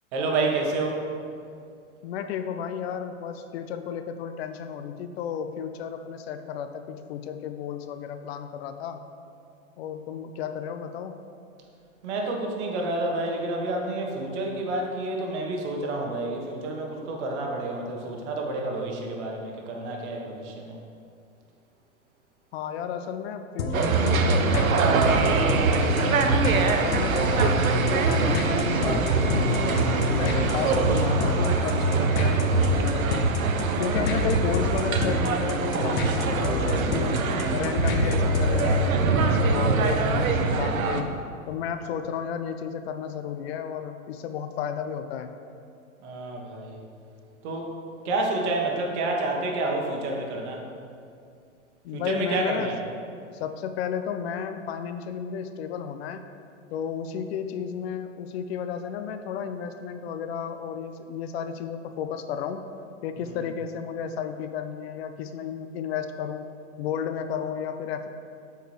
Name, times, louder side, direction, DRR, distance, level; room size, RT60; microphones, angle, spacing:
voice 1, 0.1-1.1 12.0-20.8 46.0-46.8 47.4-47.7 48.0-50.6 51.9-52.7, right 2 dB, 55° right, 0 dB, 1.3 m, -29 dB
voice 2, 2.0-9.0 9.8-11.3 22.5-26.4 26.8-33.3 33.8-37.2 37.5-41.1 41.5-45.3 51.8-52.8 53.3-56.2 56.7-62.7 63.0-66.5 66.8-68.1, left 8 dB, 50° left, 8 dB, 0.5 m, -33 dB
sound 1, 23.6-38.8, left 3 dB, 85° left, 0.9 m, -30 dB
sound 2, 23.7-41.0, right 3 dB, 85° right, 0.7 m, -23 dB
7.8 x 4.5 x 3.2 m, 2.4 s
hypercardioid pair, 115°, 40 cm